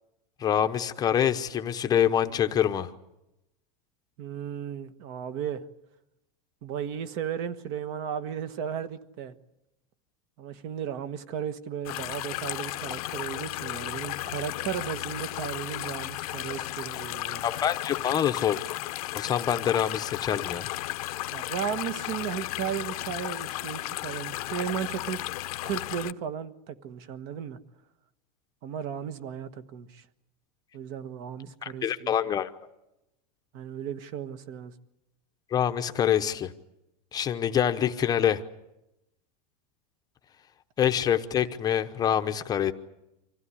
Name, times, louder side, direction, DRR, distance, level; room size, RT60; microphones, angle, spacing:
voice 1, 0.4-2.9 17.4-18.6 19.1-20.7 31.6-32.5 35.5-36.5 37.1-38.4 40.8-42.7, left 9 dB, 20° left, 7 dB, 0.8 m, -25 dB
voice 2, 4.2-5.6 6.6-9.3 10.4-17.5 21.3-25.3 25.6-27.6 28.6-30.0 30.7-32.1 33.5-34.7, right 9 dB, 45° right, 12 dB, 1.4 m, -35 dB
sound 1, 11.9-26.1, left 18 dB, 65° left, 0.8 m, -34 dB
25.5 x 16.0 x 9.9 m, 0.92 s
supercardioid pair, 160°, 20 cm